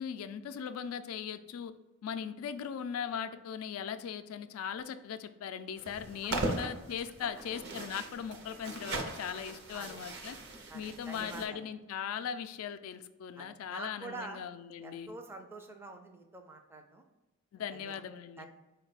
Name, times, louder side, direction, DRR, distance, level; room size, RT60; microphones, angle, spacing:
voice 1, 0.0-1.7 2.0-10.4 10.7-15.1 17.5-18.5, left 8 dB, 75° left, 14 dB, 0.3 m, -39 dB
sound 1, 5.8-11.4, right 2 dB, 55° right, 0.6 m, -39 dB
voice 2, 9.7-10.0 10.7-11.7 13.4-14.4 14.8-17.0 17.7-18.0 18.4-18.5, right 2 dB, 10° right, 3 dB, 0.4 m, -46 dB
4.6 x 2.2 x 3.9 m, 1.1 s
head